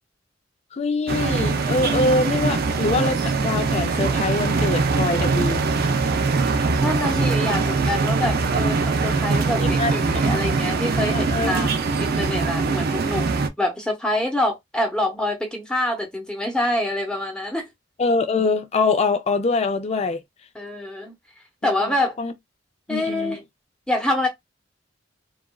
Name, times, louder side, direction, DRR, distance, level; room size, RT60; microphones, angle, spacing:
voice 1, 0.7-5.7 9.6-9.9 10.3-10.4 11.1-11.7 18.0-20.2 21.6-22.3 22.9-23.4, left 3 dB, 35° left, 0.4 m, -24 dB
sound 1, 1.1-13.5, right 4 dB, 55° right, 0.4 m, -22 dB
voice 2, 6.8-13.3 13.6-17.7 20.5-21.1 21.6-22.2 22.9-23.4 23.9-24.3, left 1 dB, 5° left, 0.9 m, -26 dB
2.9 x 2.4 x 2.2 m
head